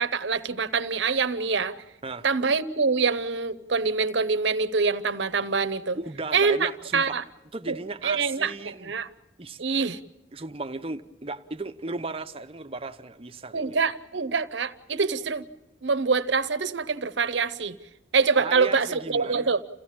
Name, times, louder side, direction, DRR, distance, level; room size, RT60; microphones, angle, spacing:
voice 1, 0.0-1.7 2.2-6.0 6.3-7.2 7.7-7.8 8.0-9.1 9.6-10.0 13.5-15.4 15.8-17.8 18.1-19.6, right 4 dB, 75° right, 0.9 m, -25 dB
voice 2, 5.9-7.2 7.5-8.9 9.4-9.6 10.3-13.7 18.4-19.5, right 3 dB, 30° right, 0.8 m, -36 dB
28.0 x 15.5 x 8.7 m
head